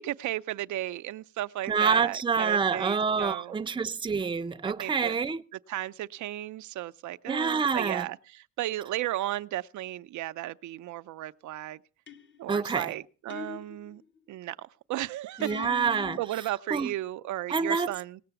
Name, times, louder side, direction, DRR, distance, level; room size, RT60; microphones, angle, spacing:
voice 1, 0.0-3.5 4.7-5.2 5.7-11.8 12.4-14.0 14.3-15.5 15.8-18.2, right 14 dB, 75° right, 0.6 m, -35 dB
voice 2, 1.7-5.4 7.3-8.1 12.5-12.9 15.4-16.2 16.7-16.9 17.5-18.0, right 5 dB, 15° right, 0.6 m, -27 dB
sound 1, 12.1-12.5 13.3-14.2 15.4-16.2, left 7 dB, 40° left, 1.0 m, -42 dB
18.5 x 6.7 x 6.9 m
cardioid pair, 90°, 30 cm